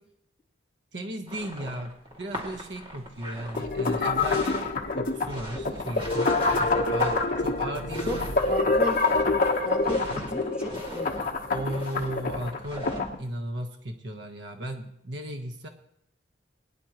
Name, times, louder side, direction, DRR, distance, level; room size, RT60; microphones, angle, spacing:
voice 1, 0.9-4.6 4.9-8.3 10.1-10.3 11.5-12.9 13.2-15.7, right 1 dB, 65° right, 4 dB, 1.3 m, -36 dB
sound 1, 1.3-13.2, equal, 30° right, 2.6 m, -40 dB
sound 2, 3.6-13.1, left 3 dB, 50° left, 1.2 m, -26 dB
voice 2, 8.5-9.0 9.6-11.2, left 1 dB, 5° right, -1 dB, 2.6 m, -34 dB
22.5 x 10.5 x 3.1 m, 0.74 s
head